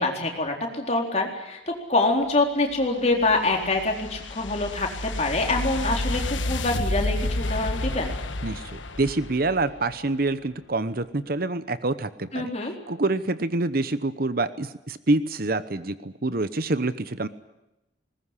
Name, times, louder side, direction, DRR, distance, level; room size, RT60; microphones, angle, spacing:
voice 1, 0.0-8.1 12.3-12.7, left 2 dB, 35° left, 2 dB, 4.1 m, -25 dB
sound 1, 2.7-10.0, left 2 dB, 90° left, 1.3 m, -31 dB
voice 2, 8.4-12.5 12.9-17.3, right 2 dB, 50° right, 13 dB, 0.9 m, -26 dB
20.5 x 19.5 x 10.0 m, 0.93 s
head